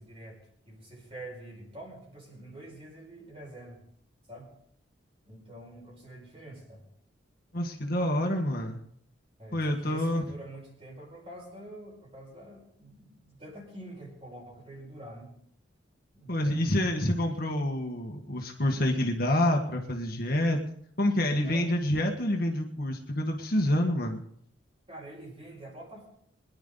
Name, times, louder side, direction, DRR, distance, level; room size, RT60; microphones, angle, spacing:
voice 1, 0.0-3.8 4.3-4.5 5.2-6.9 9.4-15.3 16.1-17.0 21.4-21.7 24.9-26.1, right 1 dB, 30° right, -1 dB, 5.0 m, -46 dB
voice 2, 7.5-8.8 9.5-10.2 16.3-20.6 21.0-24.2, left 1 dB, 50° left, 2 dB, 1.7 m, -27 dB
22.5 x 10.5 x 4.0 m, 0.67 s
head